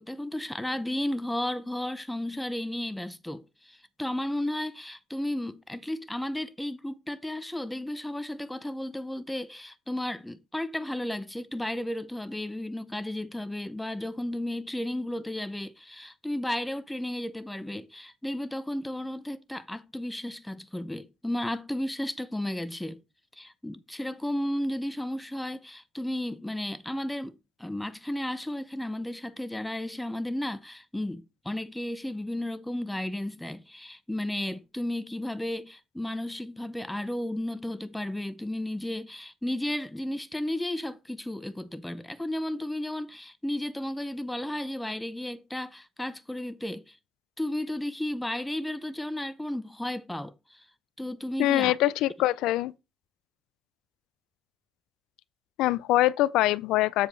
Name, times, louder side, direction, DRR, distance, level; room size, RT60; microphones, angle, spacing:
voice 1, 0.0-23.0 23.3-27.3 27.6-47.0 47.4-50.7 51.0-51.8, left 1 dB, 10° left, 0.7 m, -33 dB
voice 2, 51.4-52.7 55.6-57.1, left 15 dB, 70° left, 0.3 m, -24 dB
7.4 x 7.2 x 3.2 m
hypercardioid pair, 55°, 0 cm